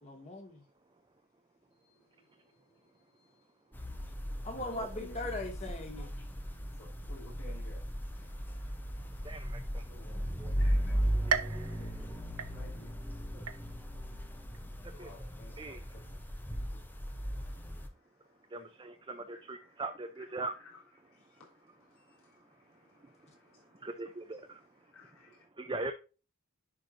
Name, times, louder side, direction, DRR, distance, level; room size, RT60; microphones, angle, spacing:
voice 1, 0.0-0.6 4.4-6.1, left 2 dB, 30° left, 2.0 m, -39 dB
voice 2, 1.8-3.5 4.5-5.4 6.0-6.3 6.8-11.2 11.5-12.0 12.5-13.7 14.7-16.9 17.4-18.8 19.2-25.4, left 1 dB, 70° left, 3.4 m, -57 dB
sound 1, 3.7-17.9, equal, 10° left, 0.8 m, -37 dB
voice 3, 9.2-9.8 10.4-10.5 11.3-11.4 15.0-15.3 15.6-15.8 18.5-20.5 23.7-24.6 25.6-25.9, right 3 dB, 20° right, 0.5 m, -40 dB
sound 2, 11.3-13.0 13.5-14.0 14.5-14.6 15.6-15.7, right 7 dB, 85° right, 0.8 m, -36 dB
10.5 x 4.7 x 2.7 m
head